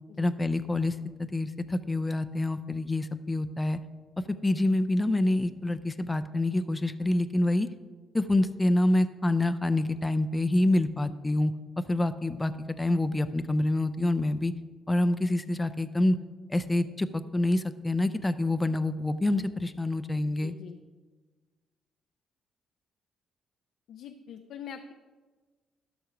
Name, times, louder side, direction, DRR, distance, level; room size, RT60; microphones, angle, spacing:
voice 1, 0.2-3.8 4.4-7.7 8.1-11.5 11.9-12.5 12.8-14.5 14.9-16.2 16.5-20.5, left 1 dB, 15° left, 11 dB, 0.5 m, -27 dB
voice 2, 20.4-20.8 23.9-24.9, left 7 dB, 80° left, 6 dB, 0.5 m, -43 dB
12.5 x 6.3 x 4.9 m, 1.4 s
cardioid pair, 90°, 0 cm